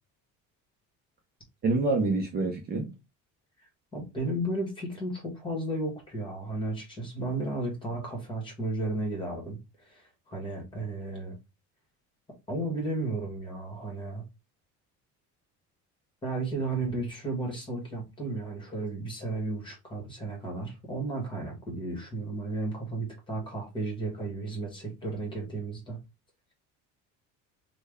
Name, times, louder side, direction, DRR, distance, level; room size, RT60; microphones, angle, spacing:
voice 1, 1.6-2.9, right 3 dB, 30° right, 0.5 m, -26 dB
voice 2, 3.9-11.4 12.5-14.2 16.2-26.0, right 2 dB, 15° left, 1.2 m, -34 dB
3.3 x 2.2 x 3.4 m
cardioid pair, 165°, 33 cm